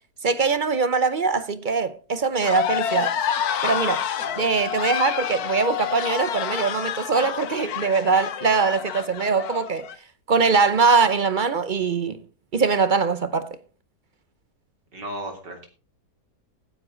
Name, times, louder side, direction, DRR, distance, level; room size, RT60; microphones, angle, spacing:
voice 1, 0.2-3.1 3.6-4.0 4.4-9.9 10.3-12.2 12.5-13.5, right 4 dB, 45° right, 0.7 m, -22 dB
sound 1, 2.4-9.9, left 9 dB, 65° left, 1.3 m, -28 dB
voice 2, 14.9-15.7, right 1 dB, 85° right, 3.8 m, -35 dB
15.5 x 9.9 x 3.9 m
omnidirectional pair, 1.8 m